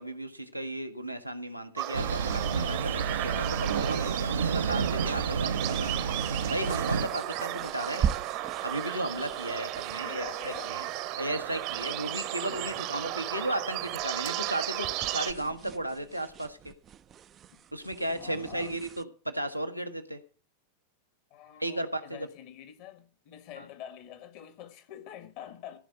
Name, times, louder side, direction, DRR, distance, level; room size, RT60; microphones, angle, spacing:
voice 1, 0.0-8.1 8.6-10.9 11.2-16.7 17.7-20.2 21.6-22.3 23.6-23.7, right 1 dB, 90° right, 1.1 m, -35 dB
sound 1, 1.8-15.3, right 15 dB, 45° right, 1.0 m, -34 dB
Thunder, 1.9-7.1, right 5 dB, 70° right, 0.8 m, -30 dB
sound 2, 5.6-19.0, right 8 dB, 25° right, 0.5 m, -41 dB
voice 2, 10.0-10.7 18.2-18.7 21.3-25.8, left 11 dB, 45° left, 1.7 m, -46 dB
15.0 x 5.0 x 7.8 m
figure-of-eight pair, 90°, 0 cm